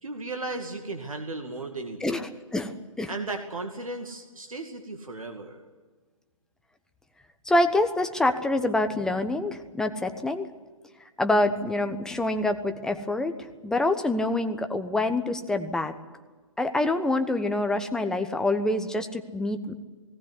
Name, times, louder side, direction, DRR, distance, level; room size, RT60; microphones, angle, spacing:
voice 1, 0.0-2.2 3.1-5.6, right 2 dB, 80° right, 5 dB, 2.2 m, -35 dB
voice 2, 2.0-3.1 7.4-10.5 11.2-13.4 13.6-15.9 16.6-19.7, left 2 dB, 5° left, 7 dB, 1.1 m, -26 dB
18.0 x 18.0 x 9.8 m, 1.4 s
figure-of-eight pair, 130°, 17 cm